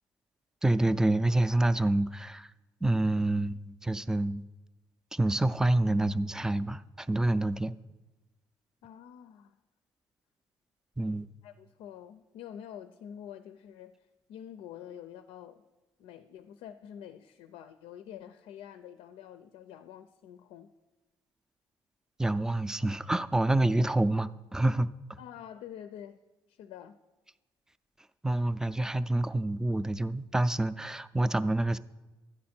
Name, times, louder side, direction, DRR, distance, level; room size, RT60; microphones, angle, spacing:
voice 1, 0.6-2.5 2.8-4.4 5.1-7.7 11.0-11.3 22.2-24.9 28.2-31.8, right 2 dB, 5° right, 13 dB, 0.3 m, -27 dB
voice 2, 8.8-9.6 11.4-15.6 16.0-20.7 25.2-26.2 26.5-27.0, left 9 dB, 90° left, 10 dB, 0.4 m, -47 dB
12.0 x 9.5 x 4.3 m, 1.1 s
cardioid pair, 105°, 9 cm